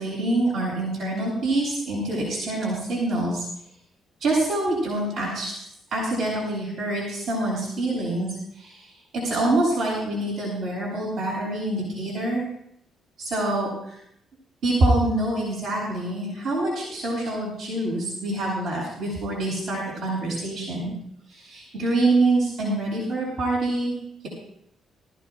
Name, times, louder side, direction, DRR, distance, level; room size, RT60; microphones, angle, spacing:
voice 1, 0.0-3.4 4.2-5.6 5.9-12.5 13.2-14.0 14.6-20.9 21.3-23.9, right 2 dB, 75° right, -5 dB, 7.7 m, -25 dB
23.5 x 15.5 x 2.6 m, 0.73 s
cardioid pair, 90°, 0 cm